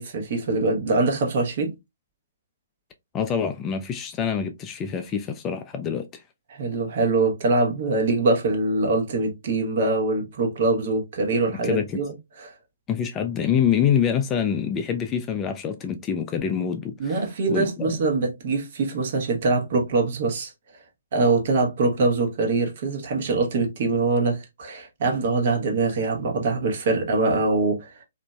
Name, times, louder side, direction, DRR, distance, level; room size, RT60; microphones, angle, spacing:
voice 1, 0.0-1.7 6.5-12.5 17.0-20.5 21.1-28.0, right 3 dB, 50° right, 0.9 m, -23 dB
voice 2, 3.1-6.2 11.6-12.0 12.9-17.2 17.5-18.0, left 8 dB, 20° left, 0.3 m, -25 dB
2.9 x 2.5 x 2.3 m
figure-of-eight pair, 130°, 0 cm